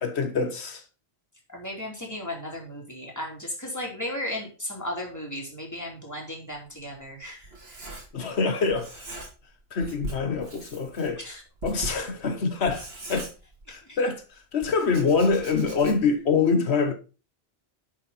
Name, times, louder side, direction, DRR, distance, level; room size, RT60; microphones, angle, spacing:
voice 1, 0.0-0.8 8.1-9.1 9.7-11.2 11.6-13.3 13.7-14.2 14.5-16.9, left 4 dB, 90° left, 1.5 m, -25 dB
voice 2, 1.5-7.8 11.2-11.4 13.7-14.0, left 1 dB, 15° left, 3.6 m, -35 dB
Writing, 6.5-8.4 8.7-9.5 9.8-14.0 14.6-16.2, right 2 dB, 70° right, 2.7 m, -40 dB
11.0 x 6.3 x 4.3 m
omnidirectional pair, 1.1 m